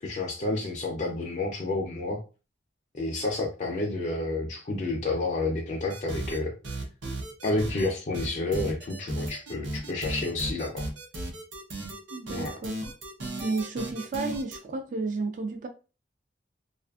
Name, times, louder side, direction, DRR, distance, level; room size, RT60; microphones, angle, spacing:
voice 1, 0.0-2.2 2.9-6.5 7.4-10.8 12.3-12.6, left 2 dB, 40° left, 0.4 m, -30 dB
sound 1, 5.9-6.4 6.6-7.9 8.1-14.6, right 1 dB, 85° right, 0.8 m, -35 dB
voice 2, 12.1-12.7 13.4-15.7, right 3 dB, 45° right, 0.3 m, -32 dB
2.5 x 2.4 x 2.3 m
head